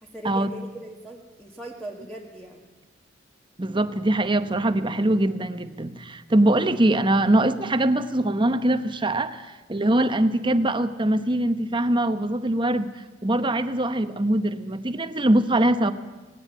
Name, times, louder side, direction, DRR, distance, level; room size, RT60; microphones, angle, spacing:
voice 1, 0.0-2.7, right 1 dB, 5° left, -1 dB, 1.5 m, -39 dB
voice 2, 3.6-9.4 9.7-12.9 13.2-15.9, right 1 dB, 25° right, 11 dB, 0.9 m, -22 dB
18.5 x 17.5 x 9.1 m, 1.2 s
head